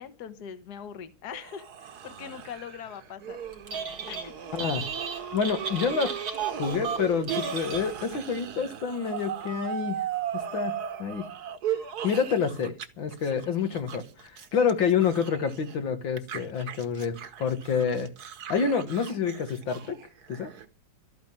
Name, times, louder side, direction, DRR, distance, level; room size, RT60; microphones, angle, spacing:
voice 1, 0.0-3.4 4.1-4.3, left 8 dB, 60° left, 1.7 m, -41 dB
sound 1, 1.3-12.9 13.1-15.8 16.2-20.6, right 9 dB, 60° right, 1.6 m, -37 dB
Telephone, 3.5-4.3 4.6-8.3, right 6 dB, 90° right, 2.9 m, -35 dB
voice 2, 4.5-4.9 5.3-6.2 6.6-10.0 10.5-10.7 11.0-11.2 12.0-18.1 18.5-20.0 20.3-20.5, left 6 dB, 85° left, 2.4 m, -28 dB
13.0 x 9.2 x 9.3 m
omnidirectional pair, 2.1 m